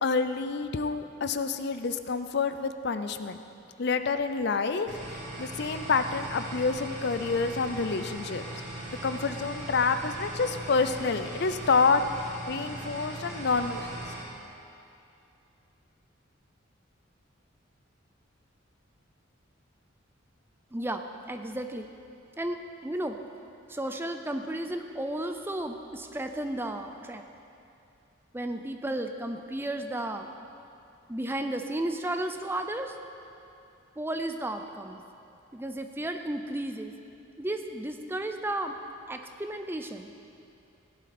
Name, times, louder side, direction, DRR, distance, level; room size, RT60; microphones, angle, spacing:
voice 1, 0.0-3.4 3.8-8.4 9.0-12.1 12.5-14.0, left 4 dB, 55° left, 10 dB, 0.5 m, -28 dB
sound 1, 4.9-14.2, right 1 dB, 60° right, 3.5 m, -39 dB
voice 2, 20.7-21.9 22.4-23.2 23.7-27.2 28.3-30.3 31.1-33.0 34.0-35.0 35.5-36.9 37.4-38.8 39.1-40.1, right 1 dB, 10° right, 6 dB, 0.5 m, -33 dB
16.5 x 11.5 x 4.3 m, 2.6 s
head